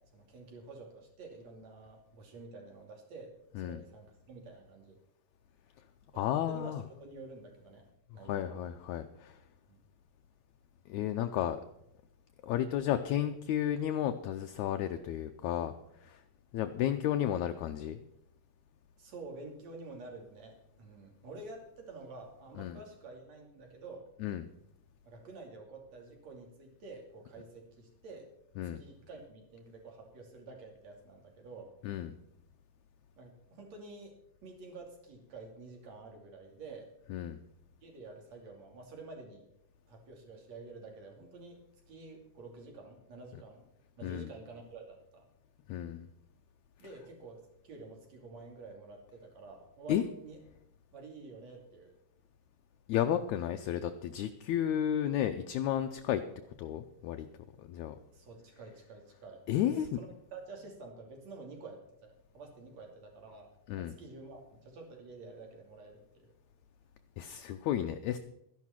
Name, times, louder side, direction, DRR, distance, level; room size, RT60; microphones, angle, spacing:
voice 1, 0.1-5.0 6.1-7.9 8.1-8.6 9.7-9.8 19.0-24.1 25.1-28.3 28.8-31.7 33.2-34.2 34.4-36.9 37.8-39.5 39.9-43.7 44.0-45.3 46.8-50.4 50.9-51.9 58.1-66.3, right 3 dB, 55° right, 2 dB, 3.8 m, -49 dB
voice 2, 6.2-6.8 8.3-9.4 10.9-11.6 12.4-15.7 16.0-16.2 16.5-18.0 22.6-22.8 24.2-24.5 28.6-28.8 31.8-32.1 37.1-37.4 44.0-44.3 45.7-46.1 49.9-50.0 52.9-56.2 56.6-57.3 57.7-58.0 59.5-59.9 63.7-63.9 67.2-68.2, left 11 dB, 75° left, 7 dB, 1.8 m, -32 dB
13.0 x 11.0 x 5.7 m, 0.82 s
omnidirectional pair, 3.7 m